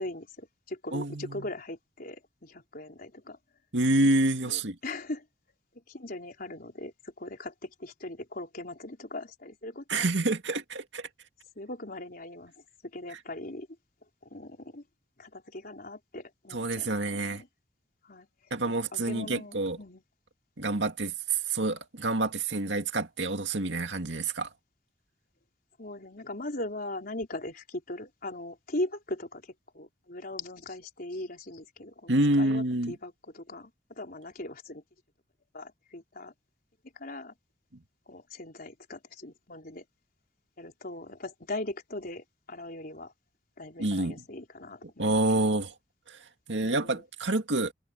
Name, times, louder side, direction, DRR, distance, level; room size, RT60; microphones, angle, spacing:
voice 1, 0.0-3.4 4.4-5.2 5.9-6.9 7.2-10.1 11.6-12.5 12.9-13.7 14.3-14.8 15.2-17.5 18.1-18.3 18.9-20.0 25.8-29.4 29.7-34.8 35.5-36.3 37.0-37.3 38.1-39.8 40.6-43.1 43.6-45.6 46.6-47.0, left 1 dB, 55° left, 4.3 m, -40 dB
voice 2, 0.9-1.5 3.7-4.8 9.9-11.1 16.5-17.4 18.5-19.8 20.6-24.5 32.1-33.0 43.8-44.2 45.0-45.7 46.5-47.7, right 2 dB, 85° right, 2.2 m, -27 dB
head